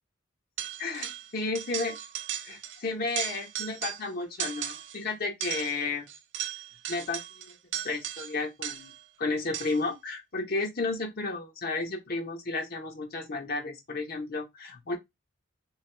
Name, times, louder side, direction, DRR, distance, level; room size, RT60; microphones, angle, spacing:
sound 1, 0.6-1.3 1.5-2.8 3.1-4.1 4.4-5.0 5.4-9.0 9.5-9.9, right 11 dB, 65° right, 0.5 m, -37 dB
voice 1, 0.8-2.0 2.4-6.1 6.9-8.9 9.2-15.0, left 3 dB, 50° left, 0.9 m, -33 dB
3.4 x 3.4 x 3.3 m
head